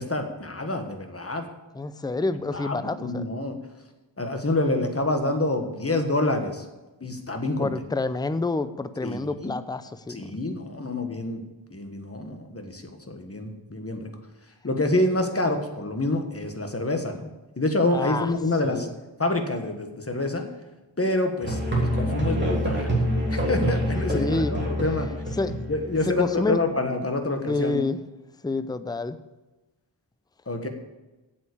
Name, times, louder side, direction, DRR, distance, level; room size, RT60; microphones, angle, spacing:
voice 1, 0.0-1.5 2.5-3.6 4.2-6.6 7.0-7.7 9.0-9.5 10.1-11.4 11.7-14.1 14.6-17.3 17.6-18.9 19.2-20.5 21.0-23.0 23.3-25.1 25.7-27.8 30.5-30.7, left 2 dB, 30° left, 5 dB, 1.5 m, -27 dB
voice 2, 1.7-3.3 7.6-10.4 17.9-18.3 18.6-18.9 24.1-24.6 25.3-25.5 26.0-26.6 27.5-28.0 28.4-29.2, left 3 dB, 10° left, 12 dB, 0.5 m, -28 dB
Musical instrument, 21.4-26.2, equal, 25° right, 3.1 m, -26 dB
8.1 x 7.7 x 8.5 m, 1.1 s
wide cardioid pair, 70°, 46 cm